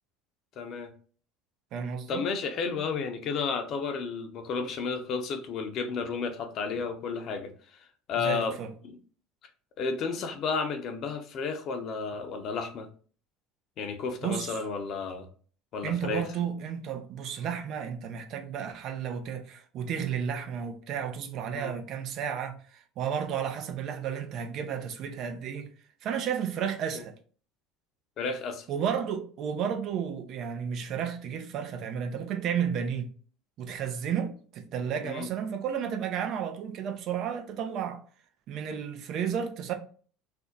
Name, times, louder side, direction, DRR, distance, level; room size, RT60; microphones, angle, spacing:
voice 1, 0.6-0.9 2.1-8.5 8.8-8.9 9.8-12.9 13.8-15.3 15.7-16.2 21.5-21.7 26.9-27.0 28.2-28.7 35.0-35.3, left 5 dB, 55° left, 0.6 m, -32 dB
voice 2, 1.7-2.2 8.1-8.7 14.2-14.6 15.8-25.7 26.0-27.1 28.7-33.1 33.6-38.0 38.5-39.7, right 8 dB, 55° right, 0.5 m, -32 dB
2.5 x 2.1 x 3.8 m
hypercardioid pair, 75°, 0 cm